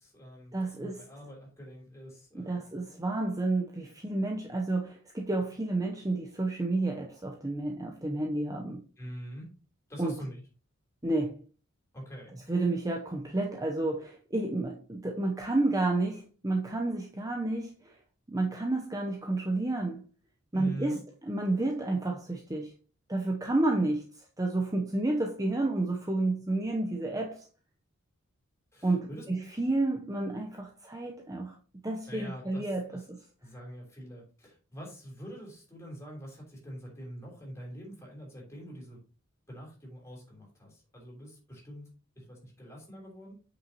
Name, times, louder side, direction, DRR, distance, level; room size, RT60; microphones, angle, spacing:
voice 1, 0.0-2.6 9.0-9.5 9.9-10.4 11.9-12.3 20.5-21.0 28.7-29.2 32.1-33.0 33.4-39.0 39.5-41.9 42.1-43.3, equal, 15° left, 3.3 m, -44 dB
voice 2, 0.5-1.0 2.3-8.8 10.0-10.1 11.0-11.4 12.5-17.9 18.3-20.0 20.5-21.0 21.3-22.7 23.1-27.5 28.8-31.5 31.8-33.2, right 2 dB, 15° right, 0.7 m, -30 dB
8.0 x 5.9 x 2.9 m
head